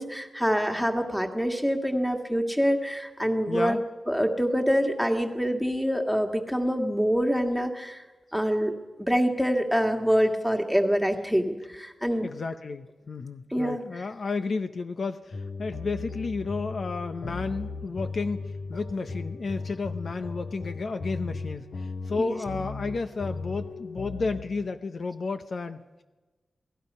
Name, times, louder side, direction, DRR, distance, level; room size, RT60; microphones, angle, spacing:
voice 1, 0.0-3.8 4.1-8.0 8.3-8.7 9.0-12.3 13.5-13.8 22.2-22.4, equal, ahead, 4 dB, 2.0 m, -25 dB
voice 2, 3.5-3.8 12.2-26.0, left 4 dB, 55° left, 8 dB, 0.8 m, -32 dB
sound 1, 15.3-24.4, left 3 dB, 90° left, 1.9 m, -36 dB
28.5 x 18.0 x 5.5 m, 1.2 s
wide cardioid pair, 120°, 0 cm